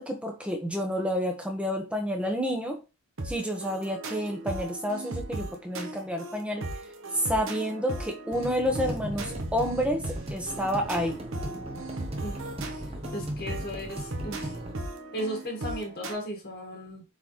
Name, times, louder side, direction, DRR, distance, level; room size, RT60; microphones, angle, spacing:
voice 1, 0.0-2.8 3.2-6.7 7.1-11.2, equal, 5° right, 2 dB, 1.2 m, -29 dB
sound 1, 3.2-16.1, right 2 dB, 60° right, 1.1 m, -37 dB
sound 2, 8.3-14.7, right 1 dB, 25° right, 1.0 m, -38 dB
voice 2, 13.1-14.6 15.1-17.0, equal, 45° left, 1 dB, 1.6 m, -36 dB
7.7 x 4.2 x 3.2 m, 0.29 s
head